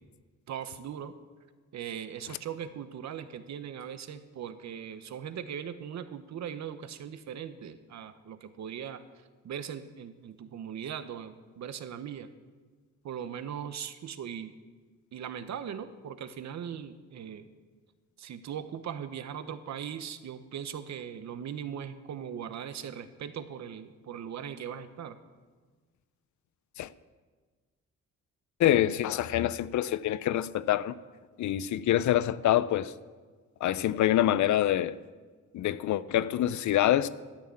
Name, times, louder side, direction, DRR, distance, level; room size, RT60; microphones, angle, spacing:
voice 1, 0.5-1.1 1.7-9.0 9.4-12.3 13.0-14.5 15.1-17.5 18.2-25.2, right 8 dB, 65° right, 0.8 m, -39 dB
voice 2, 28.6-30.9 31.4-32.9 33.6-35.0 35.5-37.1, left 12 dB, 75° left, 0.5 m, -26 dB
13.0 x 6.4 x 8.5 m
wide cardioid pair, 150°, 30 cm